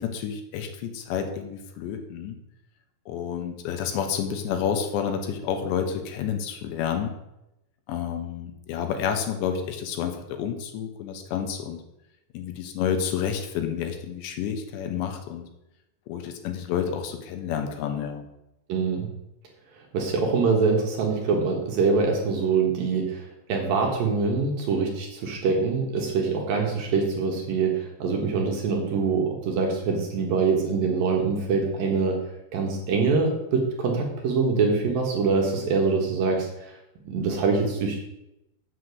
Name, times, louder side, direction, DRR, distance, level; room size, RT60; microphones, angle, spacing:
voice 1, 0.0-2.4 3.1-7.1 7.9-11.8 12.3-15.5 16.1-18.3, left 8 dB, 80° left, 5 dB, 3.4 m, -29 dB
voice 2, 18.7-19.1 19.9-23.2 23.5-32.2 32.5-36.5 37.1-38.0, right 4 dB, 65° right, 1 dB, 2.9 m, -24 dB
8.3 x 7.7 x 6.5 m, 0.88 s
omnidirectional pair, 5.1 m